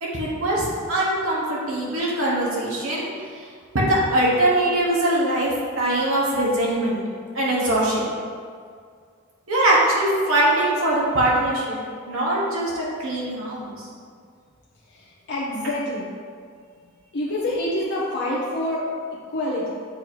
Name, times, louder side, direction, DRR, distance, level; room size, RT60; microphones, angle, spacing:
voice 1, 0.0-3.1 3.4-3.5 3.7-7.0 7.3-8.1 9.5-11.8 12.1-13.8, right 1 dB, 70° right, -6 dB, 1.2 m, -22 dB
voice 2, 14.9-16.1 17.1-19.7, left 1 dB, 55° left, -5 dB, 0.7 m, -27 dB
7.8 x 2.8 x 4.4 m, 2.1 s
head